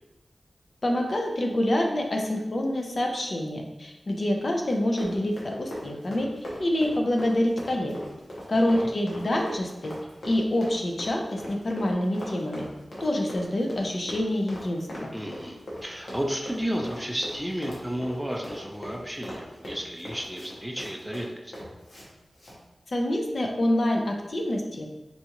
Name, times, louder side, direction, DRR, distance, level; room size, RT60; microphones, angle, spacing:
voice 1, 0.8-6.3 6.6-7.9 8.5-9.9 10.2-12.7 13.0-15.1 22.9-24.9, left 1 dB, 50° left, 1 dB, 0.5 m, -26 dB
Run, 4.7-22.1 22.4-22.6, equal, 85° left, 0.9 m, -40 dB
voice 2, 8.5-8.9 15.1-21.5, equal, 5° right, 1 dB, 0.4 m, -32 dB
4.0 x 2.4 x 2.9 m, 1.0 s
wide cardioid pair, 90°, 0 cm